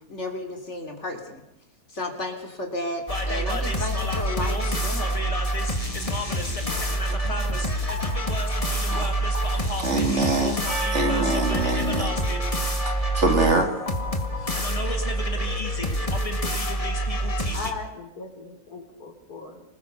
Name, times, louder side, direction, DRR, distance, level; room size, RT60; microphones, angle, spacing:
voice 1, 0.0-1.4 1.9-5.2 6.5-7.6, left 1 dB, 45° left, 3 dB, 3.7 m, -34 dB
sound 1, 3.1-17.7, equal, 20° left, 2.1 m, -26 dB
voice 2, 8.9-9.2 9.8-10.6 10.9-12.1 13.1-13.7, right 2 dB, 45° right, 4 dB, 3.2 m, -23 dB
Percussion, 10.7-15.1, right 2 dB, 20° right, 7.2 m, -36 dB
voice 3, 17.1-19.6, left 4 dB, 70° left, 4 dB, 4.5 m, -38 dB
27.0 x 20.0 x 6.9 m, 0.83 s
omnidirectional pair, 1.7 m